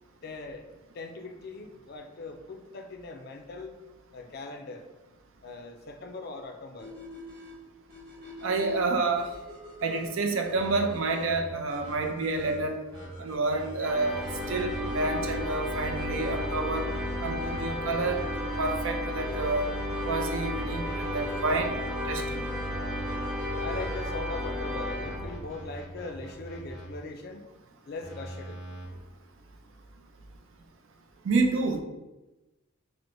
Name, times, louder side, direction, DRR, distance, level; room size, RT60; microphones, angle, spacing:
voice 1, 0.2-0.7 0.9-3.8 4.1-4.9 5.4-6.9 23.6-27.5 27.8-28.6, left 3 dB, 50° left, 4 dB, 0.4 m, -40 dB
sound 1, 6.8-24.2, equal, 45° right, 0.9 m, -48 dB
voice 2, 8.4-9.3 9.8-12.8 13.2-16.8 17.2-19.7 20.0-21.7 22.1-22.4 31.2-31.8, right 3 dB, 70° right, 4 dB, 0.5 m, -29 dB
sound 2, 10.5-10.9 11.2-11.4 11.8-11.9 12.3-12.5 12.9-13.1 13.5-13.6 14.0-14.2 14.6-14.8 15.1-15.3 15.7-15.9 16.3-16.5 16.8-17.1 17.4-17.6 18.0-18.2 18.5-18.7 19.1-19.9 20.3-22.2 22.6-24.4 25.0-26.8 28.0-28.9, equal, 20° right, 1.1 m, -44 dB
sound 3, 13.8-25.8, left 1 dB, 5° right, 0.5 m, -33 dB
4.5 x 2.1 x 2.6 m, 1.1 s
head